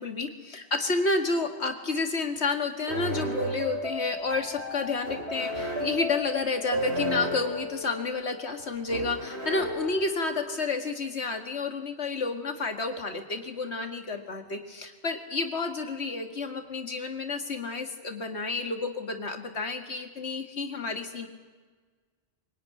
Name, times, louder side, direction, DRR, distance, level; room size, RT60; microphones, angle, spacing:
voice 1, 0.0-21.3, left 3 dB, 75° left, 5 dB, 2.3 m, -30 dB
sound 1, 2.9-10.6, equal, 70° right, 3.8 m, -33 dB
23.5 x 17.5 x 9.7 m, 1.4 s
omnidirectional pair, 1.1 m